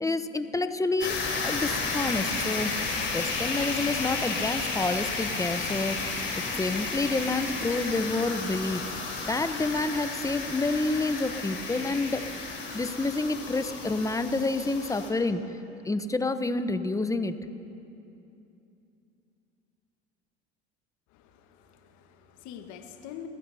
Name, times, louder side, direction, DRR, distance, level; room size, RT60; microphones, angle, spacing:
voice 1, 0.0-2.7 3.1-6.0 6.6-8.9 9.2-12.2 12.7-15.4 15.8-17.3, left 3 dB, 10° left, 10 dB, 0.8 m, -28 dB
sound 1, 1.0-15.1, left 4 dB, 35° left, 3.5 m, -32 dB
voice 2, 21.1-23.3, left 9 dB, 60° left, 6 dB, 1.5 m, -45 dB
29.0 x 15.5 x 2.8 m, 2.8 s
hypercardioid pair, 70°, 32 cm